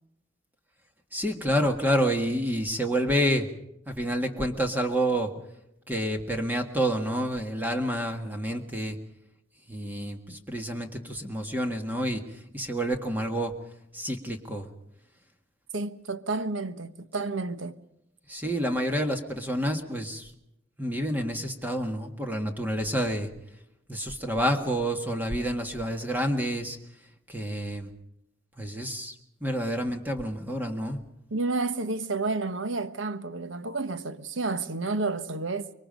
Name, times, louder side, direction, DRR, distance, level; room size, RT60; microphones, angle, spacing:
voice 1, 1.1-3.5 3.9-5.3 5.9-9.0 9.7-12.2 12.5-13.5 13.9-14.7 18.3-20.3 20.8-23.3 23.9-26.8 27.3-27.9 28.6-29.1 29.4-31.0, equal, 10° right, 1.7 m, -28 dB
voice 2, 15.7-17.8 31.3-35.7, right 3 dB, 80° right, 1.2 m, -30 dB
25.5 x 22.5 x 5.2 m
head